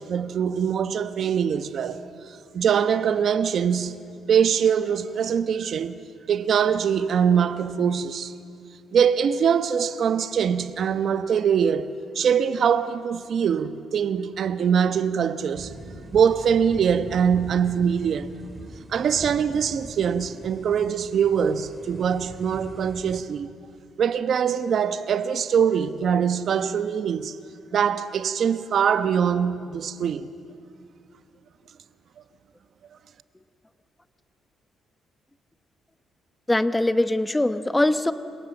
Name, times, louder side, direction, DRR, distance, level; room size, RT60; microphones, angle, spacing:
voice 1, 0.0-4.0 4.3-6.0 6.3-8.3 8.9-11.9 12.1-15.7 16.1-18.3 18.9-23.5 24.0-27.4 27.7-30.3, right 7 dB, 60° right, 1.1 m, -23 dB
sound 1, 15.5-23.2, right 1 dB, 10° right, 2.8 m, -42 dB
voice 2, 36.5-38.1, left 1 dB, 10° left, 1.1 m, -22 dB
30.0 x 26.5 x 7.3 m
cardioid pair, 90°, 0 cm